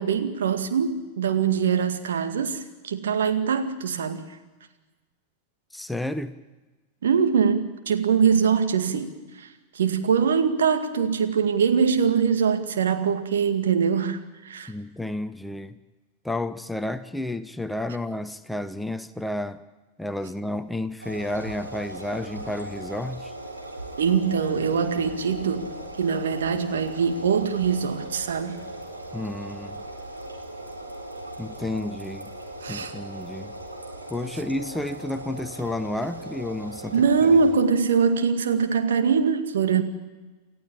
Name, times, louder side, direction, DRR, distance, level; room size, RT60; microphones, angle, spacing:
voice 1, 0.0-4.3 7.0-14.2 14.4-14.7 24.0-28.6 32.6-32.9 36.9-39.8, right 6 dB, 65° right, 7 dB, 2.0 m, -23 dB
voice 2, 5.7-6.4 14.7-15.8 16.2-19.6 20.0-23.3 29.1-29.8 31.4-32.3 32.7-33.5 34.1-37.0, left 1 dB, 5° left, 12 dB, 0.9 m, -31 dB
sound 1, 21.0-37.5, right 1 dB, 85° right, 3.8 m, -38 dB
28.5 x 14.0 x 8.6 m, 1.2 s
figure-of-eight pair, 90°, 0 cm